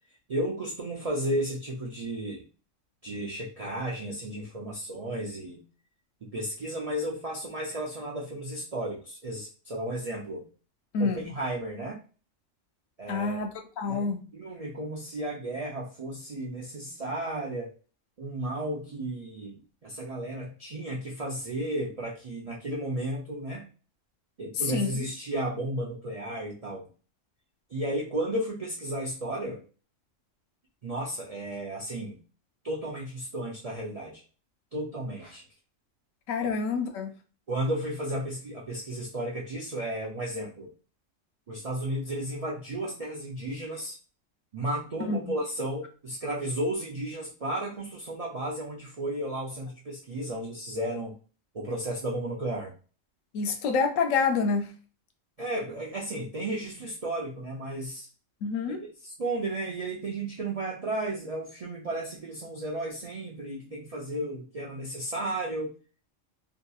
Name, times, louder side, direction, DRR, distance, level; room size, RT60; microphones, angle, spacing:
voice 1, 0.3-2.4 3.0-5.6 6.2-10.5 11.0-12.0 13.0-13.4 13.9-14.1 14.3-17.7 18.2-23.7 24.4-26.9 27.7-29.6 30.8-32.2 32.6-34.2 34.7-35.4 36.4-36.5 37.5-40.7 41.5-44.0 44.5-51.2 51.5-52.7 55.4-58.1 58.7-58.8 59.2-65.7, right 1 dB, 60° right, 0.3 m, -33 dB
voice 2, 10.9-11.3 13.1-13.5 13.8-14.2 24.6-24.9 36.3-37.1 45.0-45.3 53.3-54.7 58.4-58.8, left 4 dB, 90° left, 1.0 m, -27 dB
2.8 x 2.4 x 2.3 m
omnidirectional pair, 1.3 m